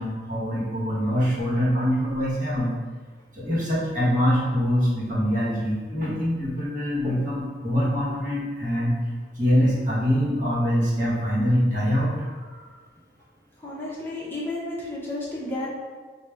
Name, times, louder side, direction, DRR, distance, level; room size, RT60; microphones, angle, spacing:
voice 1, 0.0-2.7 3.3-8.9 9.4-12.6, equal, 45° right, -6 dB, 1.1 m, -24 dB
voice 2, 13.6-15.7, left 2 dB, 10° left, -7 dB, 0.7 m, -32 dB
4.7 x 2.2 x 3.3 m, 1.5 s
head